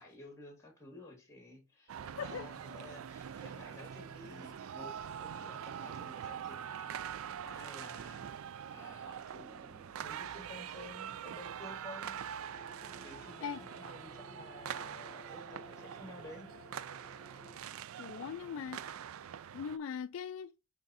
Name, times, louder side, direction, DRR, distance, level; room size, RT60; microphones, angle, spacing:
voice 1, 0.0-8.3 8.7-12.2 12.5-12.6 13.0-16.5, left 2 dB, 15° left, 2.0 m, -53 dB
sound 1, 1.9-19.8, right 8 dB, 70° right, 0.4 m, -44 dB
sound 2, 12.5-17.6, left 2 dB, 35° left, 1.6 m, -56 dB
voice 2, 18.0-18.8 19.5-20.5, left 7 dB, 65° left, 0.3 m, -40 dB
6.5 x 3.5 x 4.1 m
head